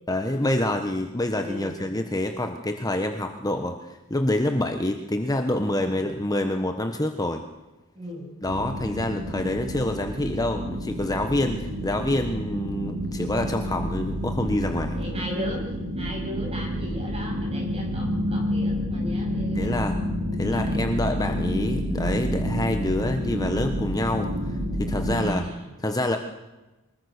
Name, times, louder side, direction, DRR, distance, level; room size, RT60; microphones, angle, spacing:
voice 1, 0.1-7.4 8.4-14.9 19.5-20.0 20.4-25.4 25.8-26.2, left 1 dB, 15° left, 6 dB, 1.2 m, -27 dB
voice 2, 1.3-1.8 7.9-8.3 14.9-15.6 15.9-19.9 20.5-21.0 25.1-25.7, equal, 25° right, 0 dB, 7.9 m, -37 dB
sound 1, 8.5-25.3, equal, 55° right, 4.3 m, -29 dB
24.0 x 21.0 x 6.7 m, 1.1 s
head